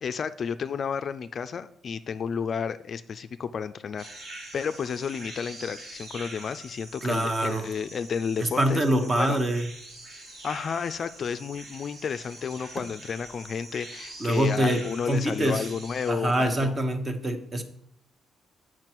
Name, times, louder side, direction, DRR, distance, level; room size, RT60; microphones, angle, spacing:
voice 1, 0.0-9.4 10.4-16.7, left 6 dB, 45° left, 11 dB, 0.3 m, -32 dB
sound 1, 4.0-16.1, right 2 dB, 55° right, 1.9 m, -44 dB
voice 2, 7.0-7.7 8.4-9.7 14.2-14.8 15.1-15.6 16.1-17.6, right 1 dB, 25° right, 8 dB, 1.0 m, -25 dB
7.6 x 5.9 x 4.5 m, 0.69 s
cardioid pair, 110°, 0 cm